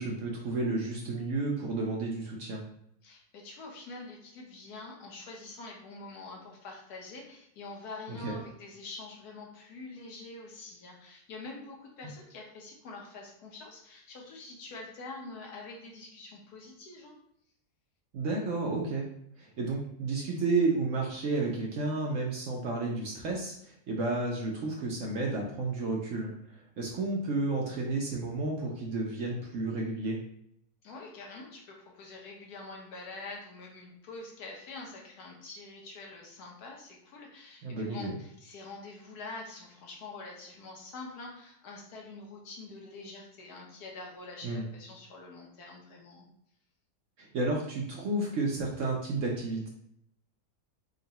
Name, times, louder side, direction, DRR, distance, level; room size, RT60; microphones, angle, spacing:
voice 1, 0.0-2.6 8.2-8.3 18.1-19.1 19.4-30.2 37.6-38.2 44.4-44.6 47.2-49.7, right 3 dB, 65° right, -1 dB, 0.8 m, -31 dB
voice 2, 3.0-17.2 30.8-46.3, left 3 dB, 75° left, -1 dB, 1.4 m, -45 dB
3.7 x 2.2 x 4.0 m, 0.73 s
omnidirectional pair, 1.7 m